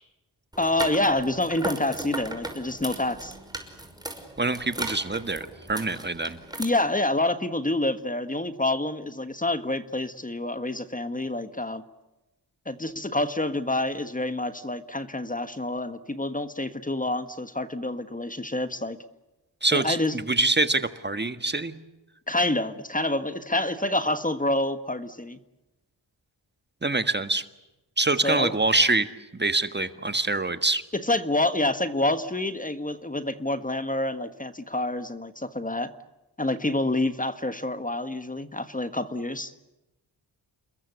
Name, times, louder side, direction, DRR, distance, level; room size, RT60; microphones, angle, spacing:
sound 1, 0.5-6.6, right 1 dB, 10° right, 5.8 m, -37 dB
voice 1, 0.6-3.3 6.6-11.8 12.6-19.0 19.7-20.2 22.3-25.4 28.2-28.5 30.9-35.9 36.4-39.5, left 2 dB, 20° left, 11 dB, 1.6 m, -27 dB
voice 2, 4.4-6.4 19.6-20.0 20.3-21.7 26.8-27.4 28.0-29.1 29.4-30.8, right 2 dB, 25° right, 10 dB, 1.6 m, -25 dB
29.0 x 21.5 x 8.2 m, 1.0 s
cardioid pair, 75°, 42 cm